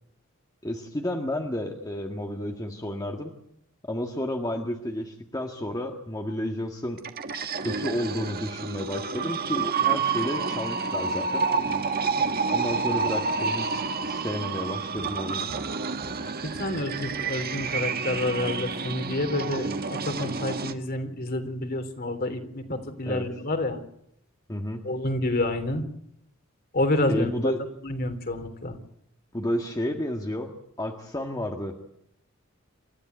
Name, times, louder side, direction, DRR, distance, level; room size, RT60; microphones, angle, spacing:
voice 1, 0.6-3.3 3.8-7.0 7.6-11.4 12.5-15.5 23.1-23.3 24.5-24.8 27.1-27.6 29.3-31.8, left 1 dB, 20° left, 2 dB, 1.7 m, -31 dB
sound 1, 7.0-20.7, right 5 dB, 45° right, 1.6 m, -29 dB
voice 2, 16.4-23.8 24.8-25.8 26.7-27.5 27.8-28.8, left 1 dB, 45° left, 6 dB, 3.4 m, -28 dB
28.0 x 14.0 x 9.3 m, 0.75 s
head